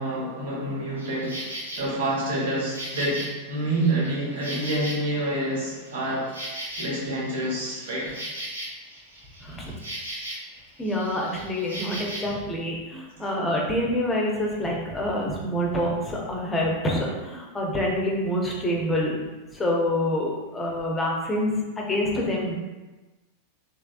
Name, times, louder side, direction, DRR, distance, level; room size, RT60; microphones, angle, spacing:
voice 1, 0.0-6.3 6.8-8.2, right 1 dB, 60° right, -5 dB, 1.1 m, -28 dB
Insect, 1.0-1.8 2.3-5.4 5.7-10.6 10.8-12.4, right 1 dB, 80° right, 0.7 m, -37 dB
voice 2, 9.4-9.7 10.8-19.1 19.5-22.5, left 1 dB, 15° left, -2 dB, 0.7 m, -26 dB
3.3 x 3.1 x 2.4 m, 1.2 s
figure-of-eight pair, 90°, 0 cm